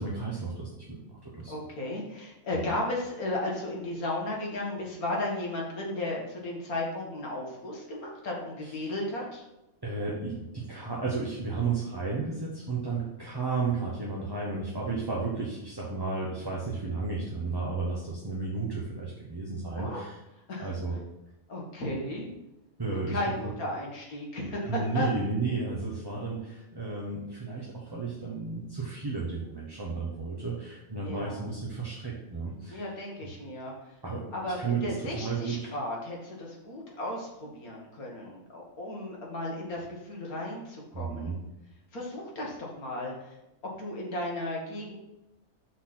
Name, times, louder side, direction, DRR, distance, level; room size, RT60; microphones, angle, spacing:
voice 1, 0.0-1.6 2.6-2.8 8.6-8.7 9.8-20.2 20.6-21.0 22.8-23.2 24.7-32.9 33.2-33.3 34.0-34.3 34.6-35.7 40.9-41.4, right 4 dB, 20° right, -4 dB, 0.8 m, -33 dB
voice 2, 1.5-9.4 19.7-20.0 20.5-20.7 21.5-22.3 22.9-25.1 31.0-31.5 32.7-34.0 34.3-41.3 41.9-43.4 43.8-44.9, left 1 dB, 70° left, -2 dB, 2.0 m, -35 dB
6.1 x 4.1 x 5.9 m, 0.94 s
omnidirectional pair, 1.6 m